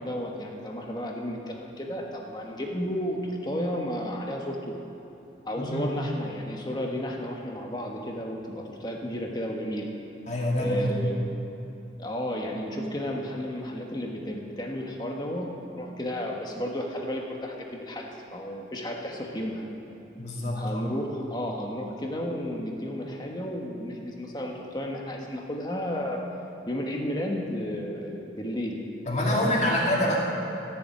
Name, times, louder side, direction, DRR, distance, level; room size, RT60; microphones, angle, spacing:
voice 1, 0.0-4.7 5.4-9.9 10.6-11.1 12.0-19.6 20.5-26.2 26.7-28.8 29.3-29.7, equal, 25° left, 0 dB, 1.3 m, -32 dB
voice 2, 5.6-5.9 10.3-11.1 20.2-20.8 29.1-30.2, left 1 dB, 40° left, -3 dB, 2.3 m, -26 dB
14.0 x 7.1 x 8.4 m, 2.9 s
head